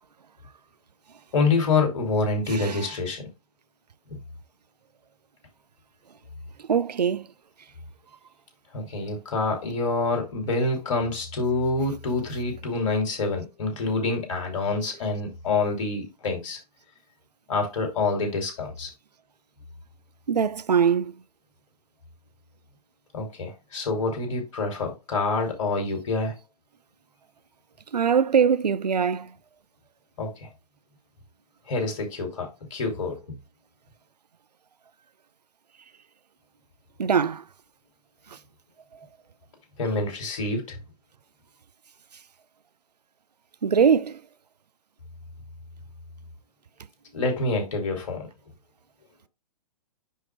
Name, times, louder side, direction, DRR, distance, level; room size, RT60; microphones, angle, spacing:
voice 1, 1.3-3.2 8.7-16.6 17.5-18.9 23.1-26.3 30.2-30.5 31.7-33.2 39.8-40.8 47.1-48.2, left 3 dB, 50° left, 2.9 m, -27 dB
voice 2, 6.7-7.3 20.3-21.1 27.9-29.3 37.0-37.4 43.6-44.2, right 7 dB, 80° right, 0.5 m, -22 dB
10.0 x 4.3 x 2.3 m
figure-of-eight pair, 115°, 20 cm